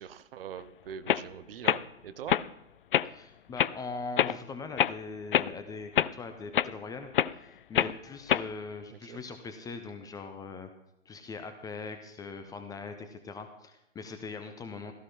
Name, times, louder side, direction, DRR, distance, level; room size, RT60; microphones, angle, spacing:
voice 1, 0.0-2.4 9.1-9.2 14.9-15.0, right 8 dB, 50° right, 13 dB, 1.0 m, -42 dB
sound 1, 0.6-0.7 1.1-1.2 1.6-1.8 2.3-2.5 2.9-3.1 3.6-3.7 4.2-4.4 4.8-5.0 5.3-5.5 6.0-6.1 6.5-6.7 7.1-7.3 7.7-7.9 8.3-8.5, left 10 dB, 45° left, 0.4 m, -25 dB
voice 2, 3.0-7.1 7.7-10.7 11.1-14.9, left 4 dB, 10° left, 7 dB, 0.7 m, -41 dB
16.5 x 14.0 x 3.7 m, 0.87 s
figure-of-eight pair, 115°, 38 cm